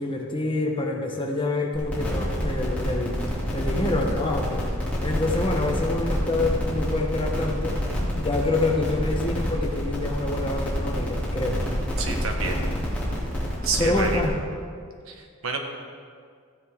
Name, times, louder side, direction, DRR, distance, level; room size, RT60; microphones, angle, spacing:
voice 1, 0.0-3.2 3.5-4.6 5.0-7.8 8.2-11.6 13.8-14.3, left 2 dB, 20° left, 1 dB, 0.9 m, -26 dB
sound 1, 1.7-14.2, equal, 5° left, 2.5 m, -28 dB
voice 2, 12.0-12.6 13.6-14.2 15.1-15.6, right 4 dB, 70° right, 3 dB, 1.4 m, -29 dB
14.5 x 9.9 x 3.6 m, 2.1 s
head